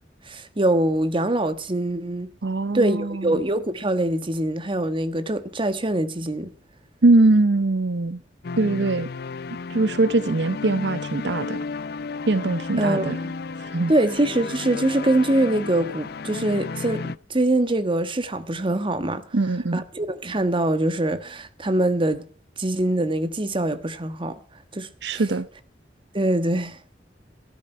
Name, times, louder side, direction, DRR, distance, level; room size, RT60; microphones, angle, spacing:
voice 1, 0.3-2.3 2.7-6.5 12.8-13.3 13.9-19.2 19.7-22.3 22.6-24.4 24.7-25.2 26.1-26.8, right 1 dB, 30° right, 1.3 m, -23 dB
voice 2, 2.4-3.4 7.0-8.2 8.6-9.1 9.7-11.6 12.3-13.2 13.6-13.9 19.3-19.8 25.0-25.5, right 2 dB, 70° right, 0.7 m, -21 dB
sound 1, 8.4-17.2, left 4 dB, 65° left, 0.6 m, -33 dB
14.0 x 13.5 x 4.5 m
head